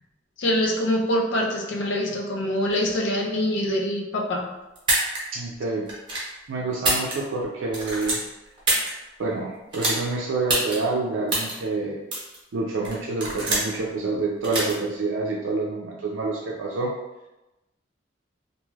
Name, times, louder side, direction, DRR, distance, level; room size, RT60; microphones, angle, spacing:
voice 1, 0.4-4.5, left 1 dB, 65° left, -1 dB, 0.5 m, -24 dB
sound 1, 4.8-5.2 5.9-6.3 6.7-7.4 7.7-8.9 9.7-10.0 10.5-10.8 11.3-11.5 12.1-12.4 12.8-13.8 14.4-14.7, right 2 dB, 25° right, 0.9 m, -24 dB
voice 2, 5.3-5.9 6.5-8.2 9.2-12.0 12.5-16.9, right 3 dB, 85° right, -2 dB, 0.4 m, -27 dB
2.6 x 2.3 x 3.1 m, 0.99 s
head